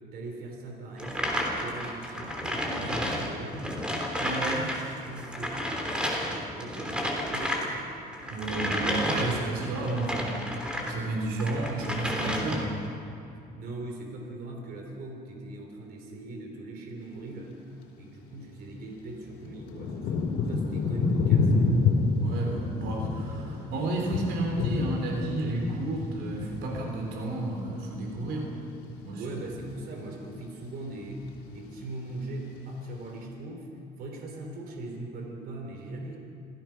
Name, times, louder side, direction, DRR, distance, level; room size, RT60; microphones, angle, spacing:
voice 1, 0.1-3.7 4.4-6.1 6.5-7.8 13.6-17.6 18.0-21.9 29.2-33.7 34.0-36.2, right 2 dB, 65° right, 2 dB, 3.5 m, -40 dB
sound 1, 1.0-4.8 5.1-11.0 11.4-12.8, equal, 5° right, 3.4 m, -31 dB
voice 2, 4.2-4.6 8.3-12.8 22.1-28.5 29.0-29.2, right 2 dB, 85° right, 1 dB, 3.7 m, -32 dB
Thunder / Rain, 18.3-18.4 19.1-28.6 28.9-29.7 30.3-30.7 30.9-31.7 32.3-32.4, left 4 dB, 90° left, 3.1 m, -29 dB
27.5 x 16.0 x 6.0 m, 2.7 s
cardioid pair, 110°, 17 cm